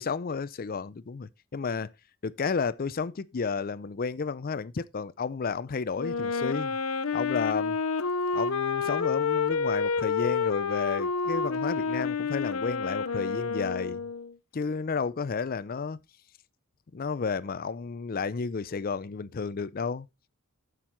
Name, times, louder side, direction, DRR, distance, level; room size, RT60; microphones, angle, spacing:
voice 1, 0.0-1.9 2.2-6.8 7.1-7.8 8.3-14.0 14.5-16.0 16.9-20.1, left 5 dB, 40° left, 0.5 m, -32 dB
Wind instrument woodwind instrument, 6.0-14.3, left 5 dB, 80° left, 0.7 m, -29 dB
8.4 x 6.2 x 4.3 m
head